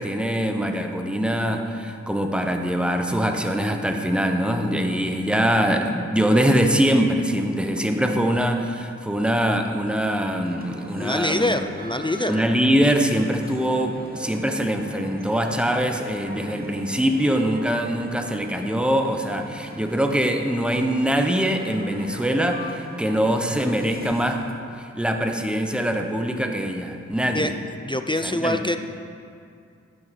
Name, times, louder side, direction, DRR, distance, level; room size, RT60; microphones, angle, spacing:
voice 1, 0.0-11.5 12.3-24.4 24.8-27.5 28.2-28.6, equal, 5° right, 4 dB, 0.8 m, -23 dB
Male speech man speaking, 10.4-24.5, equal, 30° right, 1.0 m, -41 dB
voice 2, 11.0-12.5 27.3-27.5 27.9-28.8, left 1 dB, 15° left, 7 dB, 0.4 m, -24 dB
11.5 x 7.5 x 4.2 m, 2.4 s
wide cardioid pair, 75°, 29 cm